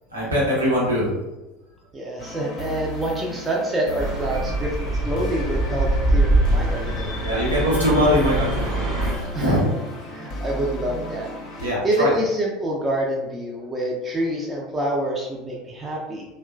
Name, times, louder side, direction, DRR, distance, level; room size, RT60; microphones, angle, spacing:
voice 1, 0.1-1.1 7.2-9.6 11.6-12.1, equal, 85° right, -6 dB, 0.9 m, -22 dB
voice 2, 1.9-7.1 9.3-9.6 10.1-11.3 11.5-16.3, right 1 dB, 20° right, -3 dB, 0.5 m, -27 dB
sound 1, 2.2-11.7, equal, 45° left, 0.6 m, -35 dB
sound 2, 4.0-9.1, right 1 dB, 55° right, 0.8 m, -23 dB
2.9 x 2.2 x 2.4 m, 1.0 s
figure-of-eight pair, 70°, 0 cm